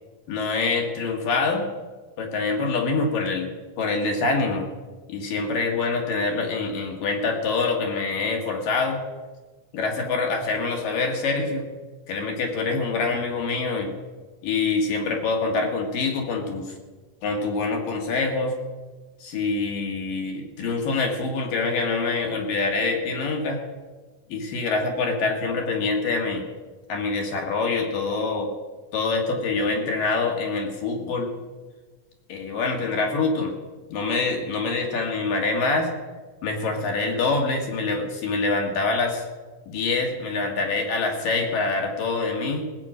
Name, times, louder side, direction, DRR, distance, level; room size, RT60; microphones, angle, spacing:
voice 1, 0.3-1.7 2.2-4.7 5.1-9.0 9.7-11.7 12.1-13.9 14.4-16.7 17.2-18.6 19.2-23.6 24.3-26.4 26.9-28.5 28.9-31.3 32.3-33.5 33.9-35.9 36.4-39.2 39.7-42.7, left 3 dB, 85° left, 1 dB, 3.7 m, -25 dB
18.0 x 8.6 x 6.3 m, 1.3 s
omnidirectional pair, 3.9 m